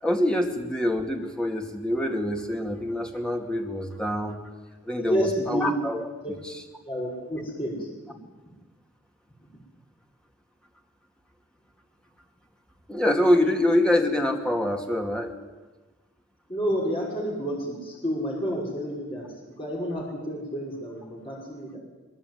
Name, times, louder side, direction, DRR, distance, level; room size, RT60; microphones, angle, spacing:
voice 1, 0.0-4.4 4.8-6.3 12.9-15.3, left 1 dB, 5° left, 3 dB, 2.4 m, -25 dB
voice 2, 4.9-5.8 6.8-7.9 16.5-21.8, equal, 25° left, -3 dB, 5.9 m, -30 dB
22.5 x 22.0 x 9.5 m, 1.2 s
head